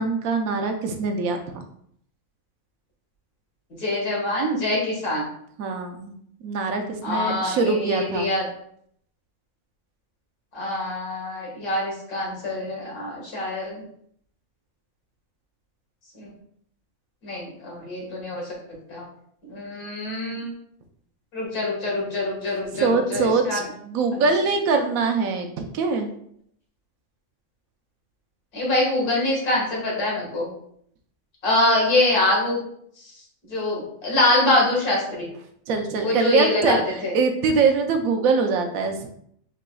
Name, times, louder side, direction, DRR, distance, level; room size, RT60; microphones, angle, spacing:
voice 1, 0.0-1.6 5.6-8.3 22.7-26.1 35.7-36.8 37.1-39.1, right 4 dB, 75° right, 5 dB, 1.0 m, -23 dB
voice 2, 3.8-5.2 7.0-8.4 10.5-13.8 16.2-16.3 17.2-18.4 18.9-19.0 19.4-20.5 21.3-23.6 28.5-30.5 31.4-32.6 33.5-35.2 36.0-37.1, left 2 dB, 85° left, -4 dB, 2.2 m, -24 dB
4.8 x 4.1 x 2.2 m, 0.67 s
omnidirectional pair, 1.5 m